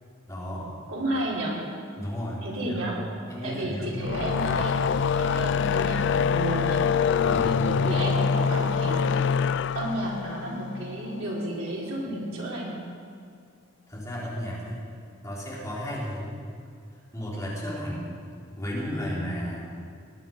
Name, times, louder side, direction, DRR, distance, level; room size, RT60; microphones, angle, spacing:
voice 1, 0.3-0.8 2.0-2.8 3.3-4.1 7.2-7.6 13.9-14.9 15.2-16.4 17.1-18.1 18.6-19.6, equal, 15° left, -6 dB, 3.5 m, -33 dB
voice 2, 0.9-1.6 2.4-3.0 3.4-4.8 5.1-6.8 7.2-9.2 9.7-12.9, right 1 dB, 90° right, -5 dB, 4.2 m, -32 dB
sound 1, 3.9-11.3, left 6 dB, 60° left, 0.3 m, -25 dB
19.0 x 11.0 x 5.4 m, 2.3 s
head